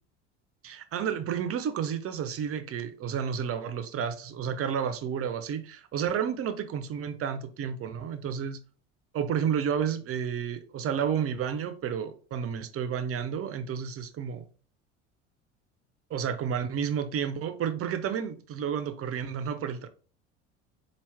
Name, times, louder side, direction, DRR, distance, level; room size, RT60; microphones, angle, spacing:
voice 1, 0.6-8.6 9.1-14.5 16.1-19.9, right 8 dB, 40° right, 0.8 m, -31 dB
4.5 x 2.5 x 3.4 m
hypercardioid pair, 75°, 35 cm